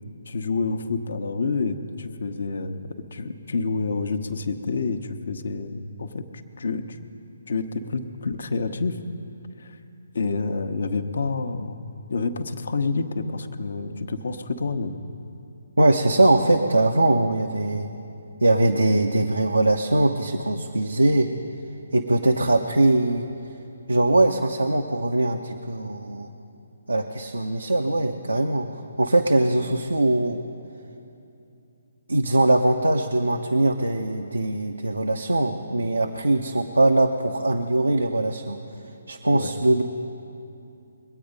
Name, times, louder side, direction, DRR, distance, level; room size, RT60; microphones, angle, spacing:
voice 1, 0.3-7.0 7.5-9.0 9.6-9.8 10.1-11.8 12.1-15.0 39.3-39.5, left 4 dB, 65° left, 8 dB, 0.9 m, -28 dB
voice 2, 15.8-17.9 18.4-21.3 21.9-23.3 23.9-26.3 26.9-30.4 32.1-38.6 39.1-39.8, right 2 dB, 85° right, 4 dB, 0.7 m, -21 dB
21.5 x 8.6 x 5.2 m, 2.7 s
figure-of-eight pair, 140°, 0 cm